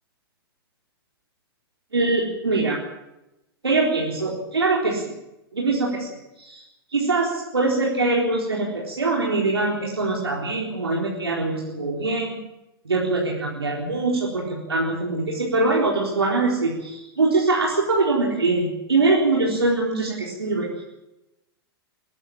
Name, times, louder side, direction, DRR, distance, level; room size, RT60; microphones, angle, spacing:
voice 1, 1.9-2.8 3.6-5.1 5.5-6.6 6.9-12.4 12.9-20.7, right 3 dB, 85° right, -3 dB, 4.1 m, -23 dB
24.5 x 16.0 x 7.3 m, 0.94 s
figure-of-eight pair, 105°, 13 cm